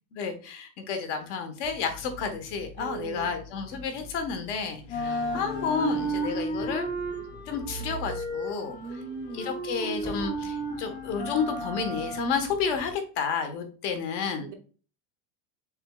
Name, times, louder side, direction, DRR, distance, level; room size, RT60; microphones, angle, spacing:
voice 1, 0.1-6.9 7.5-8.8 9.3-14.5, left 6 dB, 60° left, 6 dB, 1.2 m, -31 dB
sound 1, 1.6-4.5 4.8-12.9, right 1 dB, 35° left, 2.0 m, -34 dB
voice 2, 2.8-3.3 8.7-9.5 14.4-14.5, right 5 dB, 25° right, 5 dB, 0.4 m, -39 dB
Slam, 3.8-4.0 4.9-6.5 7.5-8.9 9.3-9.4 10.0-10.6, right 2 dB, 15° left, 0.9 m, -41 dB
6.3 x 3.7 x 2.2 m, 0.39 s
supercardioid pair, 175°, 41 cm